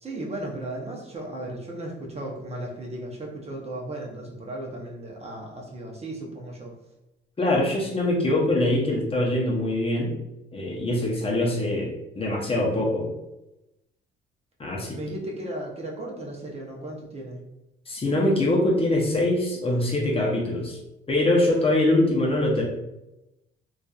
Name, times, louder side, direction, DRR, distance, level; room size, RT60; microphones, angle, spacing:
voice 1, 0.0-6.7 14.9-17.4, right 1 dB, 30° right, -1 dB, 0.7 m, -35 dB
voice 2, 7.4-10.2 10.5-13.1 14.6-15.0 17.9-20.8 21.1-22.6, left 1 dB, 30° left, -2 dB, 0.7 m, -23 dB
2.6 x 2.4 x 2.3 m, 0.93 s
cardioid pair, 90°, 20 cm